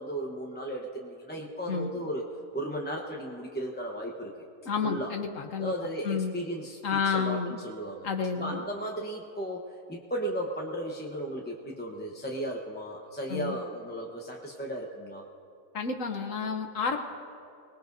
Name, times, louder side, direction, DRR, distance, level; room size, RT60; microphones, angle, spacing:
voice 1, 0.0-2.3 2.5-4.5 4.8-5.2 5.6-8.1 8.3-15.3, right 1 dB, 10° left, -1 dB, 0.8 m, -35 dB
voice 2, 4.7-5.7 6.0-6.3 6.8-7.6 8.0-8.6 13.3-13.6 15.7-17.0, left 5 dB, 60° left, 4 dB, 1.2 m, -30 dB
25.0 x 19.0 x 2.7 m, 2.5 s
omnidirectional pair, 1.7 m